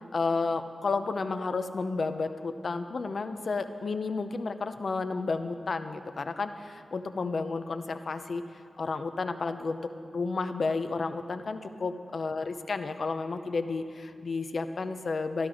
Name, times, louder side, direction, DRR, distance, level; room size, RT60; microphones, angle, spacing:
voice 1, 0.1-8.4 8.8-9.8 10.1-15.5, left 4 dB, 70° left, 9 dB, 0.7 m, -31 dB
12.5 x 12.0 x 4.9 m, 2.5 s
cardioid pair, 45°, 0 cm